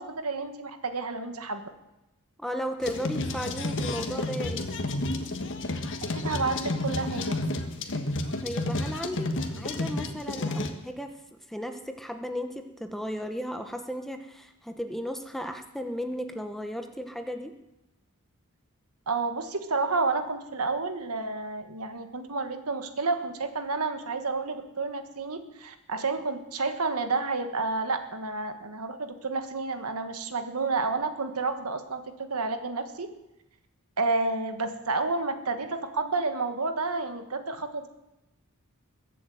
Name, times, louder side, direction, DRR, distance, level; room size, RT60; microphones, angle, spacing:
voice 1, 0.0-1.6 6.1-7.3 19.1-32.0 32.3-33.1 34.0-37.9, right 3 dB, 80° right, 8 dB, 1.6 m, -30 dB
voice 2, 2.4-4.7 8.4-11.2 11.5-17.5, equal, ahead, 6 dB, 1.0 m, -35 dB
sound 1, 2.8-10.7, left 2 dB, 55° left, 1.5 m, -31 dB
21.5 x 7.7 x 7.8 m, 0.94 s
head